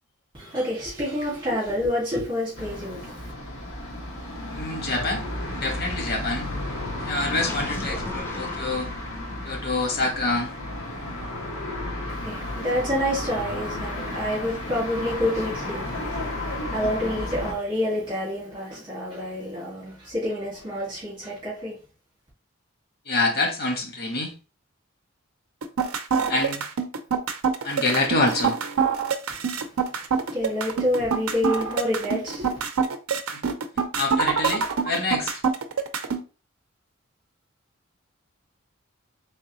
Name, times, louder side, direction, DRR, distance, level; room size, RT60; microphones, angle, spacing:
voice 1, 0.3-3.3 12.1-21.8 30.3-32.6, equal, 20° right, 1.9 m, -28 dB
sound 1, 2.5-17.5, left 1 dB, 65° left, 1.2 m, -33 dB
voice 2, 4.5-5.2 5.5-6.5 7.0-8.9 9.4-10.5 23.1-24.3 26.3-26.6 27.6-28.6 33.3-33.4 33.9-35.4, left 2 dB, 45° left, 1.0 m, -26 dB
Gurgling, 7.2-9.4, left 1 dB, 10° left, 0.5 m, -37 dB
sound 2, 25.6-36.2, right 6 dB, 85° right, 0.5 m, -25 dB
3.8 x 3.4 x 3.0 m
head